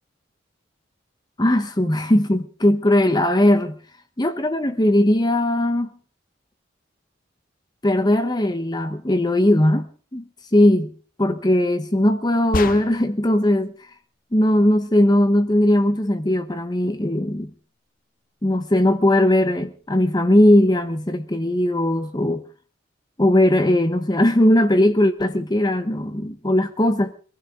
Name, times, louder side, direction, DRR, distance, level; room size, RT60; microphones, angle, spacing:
voice 1, 1.4-3.8 4.2-5.9 7.8-9.9 10.1-10.2 10.5-10.9 11.2-13.7 14.3-17.5 18.4-22.4 23.2-27.1, left 1 dB, 20° left, 0.9 m, -19 dB
sound 1, 12.5-13.3, left 3 dB, 45° left, 0.7 m, -28 dB
24.0 x 15.0 x 3.7 m
head